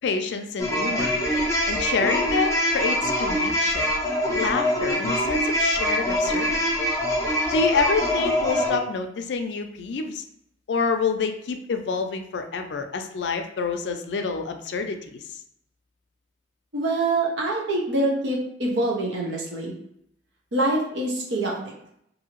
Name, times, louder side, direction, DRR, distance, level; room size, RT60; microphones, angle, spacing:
voice 1, 0.0-1.1 1.7-3.9 4.3-6.6 7.5-10.2 10.7-15.2, left 5 dB, 75° left, 6 dB, 0.4 m, -27 dB
sound 1, 0.6-8.8, equal, 15° left, 0.5 m, -24 dB
voice 2, 16.7-19.7 20.5-21.7, right 2 dB, 85° right, -1 dB, 0.8 m, -25 dB
2.7 x 2.6 x 2.9 m, 0.72 s
head